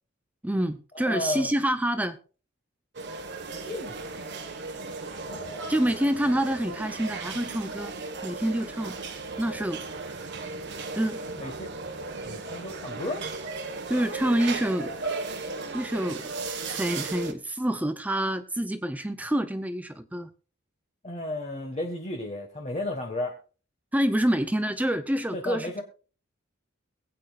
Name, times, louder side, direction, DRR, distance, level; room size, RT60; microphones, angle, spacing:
voice 1, 0.4-2.2 5.7-7.9 8.2-8.9 9.4-10.3 11.0-11.2 13.9-15.1 15.7-16.2 16.6-20.3 23.9-25.8, right 1 dB, 10° right, 10 dB, 0.6 m, -27 dB
voice 2, 0.9-1.5 3.6-4.4 5.2-5.7 11.3-11.7 12.2-13.2 21.0-23.4 25.3-25.8, left 2 dB, 35° left, 0 dB, 1.6 m, -34 dB
sound 1, 2.9-17.3, right 3 dB, 60° right, 1.4 m, -36 dB
22.5 x 8.7 x 2.4 m, 0.37 s
head